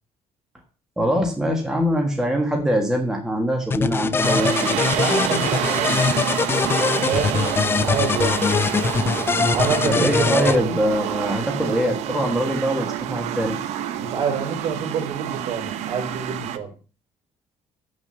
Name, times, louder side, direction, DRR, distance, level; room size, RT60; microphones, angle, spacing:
voice 1, 1.0-4.8 9.8-13.6, equal, 5° right, 1 dB, 1.6 m, -23 dB
sound 1, 3.7-10.6, left 5 dB, 20° left, 0.4 m, -22 dB
sound 2, 4.2-16.6, right 11 dB, 85° right, 0.8 m, -28 dB
voice 2, 4.9-6.0 6.7-7.4 7.8-8.4 9.5-10.6 14.0-16.7, right 6 dB, 55° right, 5 dB, 3.6 m, -27 dB
7.8 x 6.4 x 6.8 m, 0.36 s
cardioid pair, 155°, 11 cm